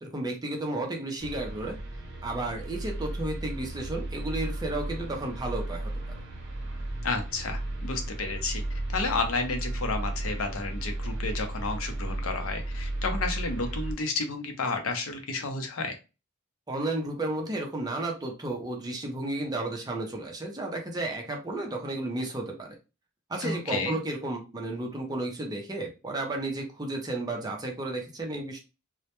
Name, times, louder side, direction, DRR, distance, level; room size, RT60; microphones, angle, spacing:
voice 1, 0.0-1.8 2.2-5.9 16.7-22.8 23.3-28.6, right 2 dB, 20° right, 1 dB, 0.4 m, -33 dB
sound 1, 1.2-13.9, right 1 dB, 55° right, 0.7 m, -34 dB
voice 2, 7.0-8.6 8.9-16.0 23.4-24.0, left 3 dB, 70° left, 5 dB, 0.5 m, -31 dB
2.1 x 2.1 x 2.8 m, 0.29 s
head